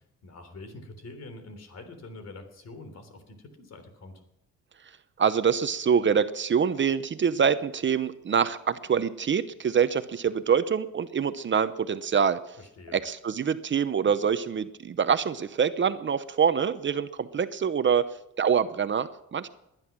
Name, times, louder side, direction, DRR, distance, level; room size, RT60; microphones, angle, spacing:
voice 1, 0.0-4.2 12.6-13.0, left 2 dB, 55° left, 8 dB, 3.5 m, -45 dB
voice 2, 5.2-12.6 12.9-18.1 18.4-19.5, right 7 dB, 40° right, 12 dB, 0.8 m, -25 dB
19.5 x 10.5 x 6.1 m, 0.85 s
cardioid pair, 90°, 30 cm